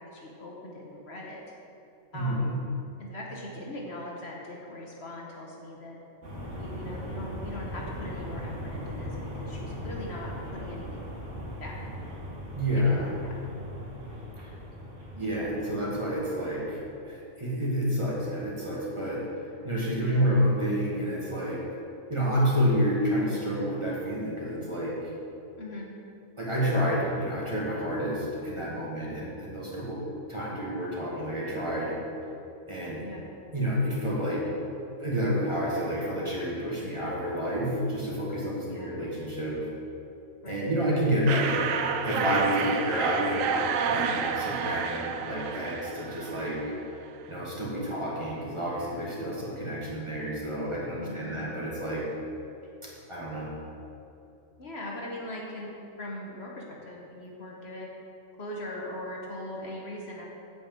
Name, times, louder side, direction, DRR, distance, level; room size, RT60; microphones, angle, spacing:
voice 1, 0.0-1.4 2.1-2.6 3.0-6.0 6.6-11.1 11.6-11.8 12.7-13.4 20.0-20.4 25.6-25.9 33.0-33.3 38.6-38.9 40.4-40.7 50.9-51.5 54.6-55.7 56.0-57.9 58.4-60.3, left 1 dB, 55° left, -2 dB, 1.4 m, -40 dB
voice 2, 2.1-2.6 12.5-13.1 15.2-19.2 19.6-21.8 22.1-24.9 26.4-30.0 30.3-32.0 32.7-33.0 33.5-34.4 35.0-39.6 40.5-46.8 47.3-52.0 53.1-53.5, equal, 25° right, -6 dB, 1.9 m, -29 dB
sound 1, 6.2-17.1, equal, 65° right, 2.0 m, -39 dB
sound 2, 41.3-46.8, right 7 dB, 90° right, 1.0 m, -30 dB
8.7 x 5.1 x 7.5 m, 2.8 s
omnidirectional pair, 1.3 m